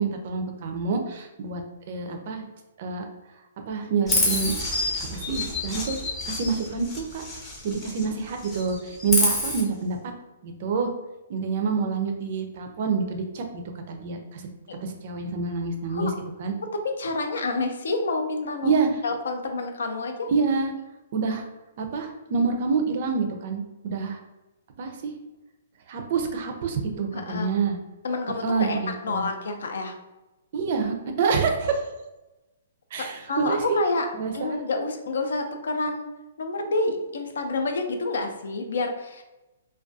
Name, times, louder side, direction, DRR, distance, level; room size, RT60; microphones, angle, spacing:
voice 1, 0.0-1.6 1.9-2.5 2.8-3.0 3.7-4.5 5.1-6.0 6.2-7.2 7.6-10.0 10.4-10.9 11.3-13.6 13.9-14.5 14.8-16.1 16.4-16.5 18.6-19.0 20.3-20.7 21.1-21.5 21.8-24.2 24.8-25.1 25.9-27.8 28.4-29.3 30.5-31.8 32.9-33.8 34.1-34.5, right 5 dB, 45° right, 4 dB, 0.4 m, -27 dB
Chirp tweet, 4.1-8.1 8.4-9.6, left 2 dB, 10° left, 0.5 m, -28 dB
voice 2, 17.0-20.3 27.1-27.5 28.0-29.9 33.0-34.1 34.3-36.1 36.4-39.2, left 3 dB, 80° left, 5 dB, 0.4 m, -28 dB
2.3 x 2.2 x 2.6 m, 1.0 s
hypercardioid pair, 165°, 0 cm